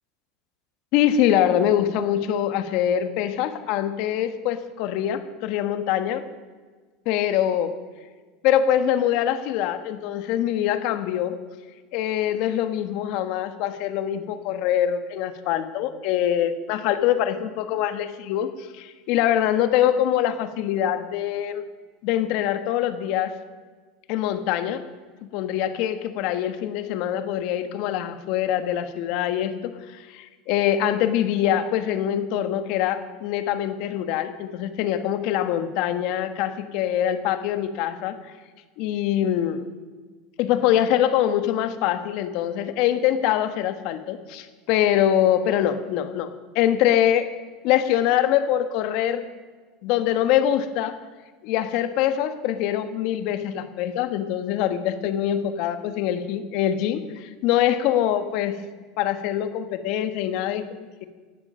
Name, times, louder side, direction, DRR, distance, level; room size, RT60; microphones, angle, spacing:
voice 1, 0.9-6.2 7.0-7.7 8.4-11.4 11.9-21.6 22.0-23.4 24.1-24.9 25.2-38.1 38.8-39.6 40.4-46.3 46.5-47.3 47.6-49.3 49.8-51.0 51.4-58.6 59.0-60.7, left 11 dB, 60° left, 10 dB, 1.4 m, -24 dB
17.5 x 12.0 x 5.6 m, 1.4 s
supercardioid pair, 125°, 0 cm